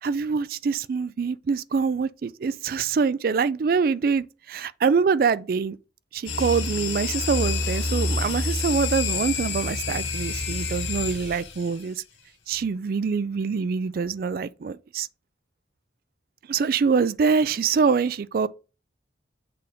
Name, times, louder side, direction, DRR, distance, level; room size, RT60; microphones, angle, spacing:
voice 1, 0.0-5.8 6.1-12.0 12.5-15.1 16.5-18.5, right 5 dB, 50° right, 0.3 m, -25 dB
sound 1, 6.3-11.8, left 3 dB, 80° left, 1.8 m, -28 dB
6.8 x 3.5 x 5.1 m
head